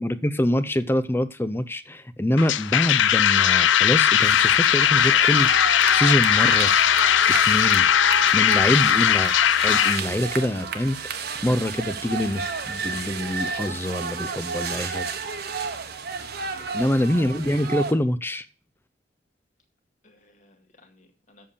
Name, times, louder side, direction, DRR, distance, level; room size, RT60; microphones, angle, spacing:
voice 1, 0.0-5.5 5.9-6.8 7.4-7.9 8.3-9.3 9.6-11.0 11.4-15.1 16.7-18.4, left 1 dB, 10° left, 0.5 m, -25 dB
sound 1, 2.4-10.0, left 9 dB, 80° left, 0.5 m, -19 dB
sound 2, 4.2-17.9, right 5 dB, 60° right, 1.1 m, -32 dB
voice 2, 16.5-17.1 20.0-21.5, left 2 dB, 45° left, 1.9 m, -56 dB
7.8 x 6.9 x 6.8 m
head